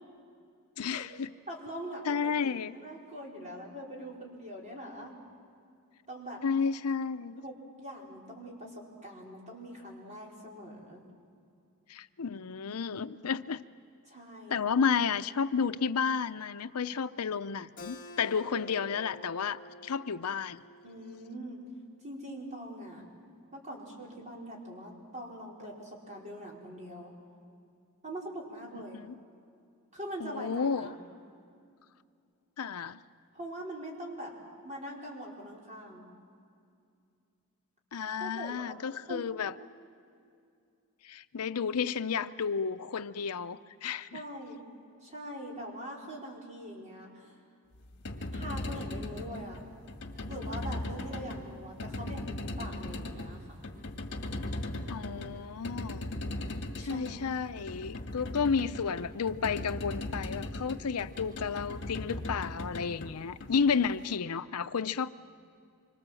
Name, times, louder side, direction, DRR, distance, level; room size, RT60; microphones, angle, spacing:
voice 1, 0.8-1.3 2.0-2.8 6.4-7.4 11.9-13.6 14.5-20.6 28.9-29.2 30.2-30.9 32.6-33.0 37.9-39.5 41.0-44.2 54.9-56.1 56.8-65.1, left 6 dB, 80° left, 0.6 m, -32 dB
voice 2, 1.5-5.1 6.1-6.4 7.4-11.0 14.1-14.6 20.8-21.6 22.0-23.1 23.5-27.1 28.0-29.0 29.9-31.0 33.3-34.3 34.6-36.0 38.2-38.8 39.1-39.2 44.1-44.6 45.0-47.3 48.3-49.7 50.3-53.6 56.8-57.3, equal, 35° right, 4.7 m, -43 dB
Keyboard (musical), 17.8-23.0, left 1 dB, 40° left, 1.6 m, -50 dB
sound 1, 47.8-64.0, left 1 dB, 55° left, 1.8 m, -39 dB
26.0 x 24.5 x 7.7 m
head